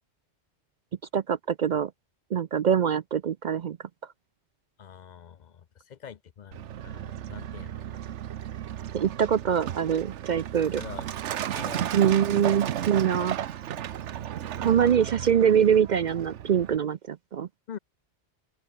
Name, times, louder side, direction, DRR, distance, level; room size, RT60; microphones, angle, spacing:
voice 1, 1.1-1.9 2.3-3.8 8.9-10.8 11.9-13.4 14.6-17.5, right 8 dB, 55° right, 0.5 m, -24 dB
voice 2, 4.8-8.0 10.8-11.1 11.5-12.0 17.7-17.8, left 8 dB, 50° left, 0.6 m, -45 dB
Truck, 6.5-16.8, right 10 dB, 80° right, 1.1 m, -34 dB
open air
omnidirectional pair, 1.2 m